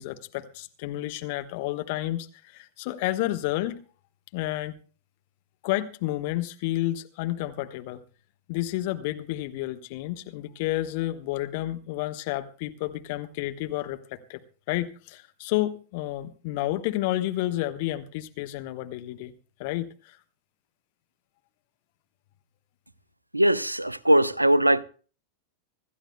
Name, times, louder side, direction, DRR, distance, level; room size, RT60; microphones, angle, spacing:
voice 1, 0.0-3.8 4.3-4.8 5.6-8.0 8.5-14.4 14.7-19.3 19.6-20.2, left 16 dB, 50° left, 1.2 m, -30 dB
voice 2, 23.3-24.8, right 1 dB, 85° right, 0.7 m, -20 dB
25.5 x 13.5 x 2.3 m
figure-of-eight pair, 90°, 0 cm